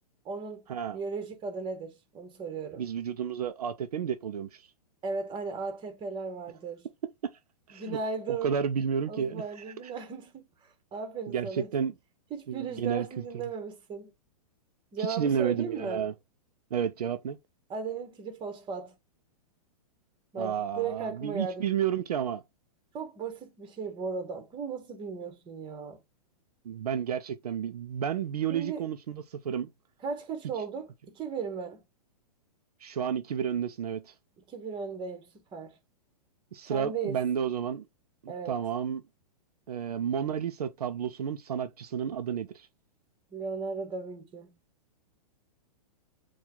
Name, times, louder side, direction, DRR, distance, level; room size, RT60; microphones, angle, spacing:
voice 1, 0.2-0.6 0.9-2.8 5.0-6.9 7.7-8.6 9.1-10.4 10.9-11.7 12.3-14.1 14.9-16.1 17.7-18.9 20.3-21.7 22.9-26.0 28.5-28.8 30.0-31.8 34.5-35.7 36.7-37.2 38.3-38.6 43.3-44.5, right 5 dB, 25° right, 1.3 m, -36 dB
voice 2, 2.8-4.7 7.2-7.3 7.7-8.0 8.3-9.9 11.3-11.9 12.5-13.2 15.0-16.1 16.7-17.4 20.4-22.4 26.6-29.7 32.8-34.1 36.5-37.9 38.2-39.0 39.7-42.7, right 8 dB, 75° right, 0.5 m, -31 dB
4.3 x 2.4 x 3.8 m
hypercardioid pair, 120°, 20 cm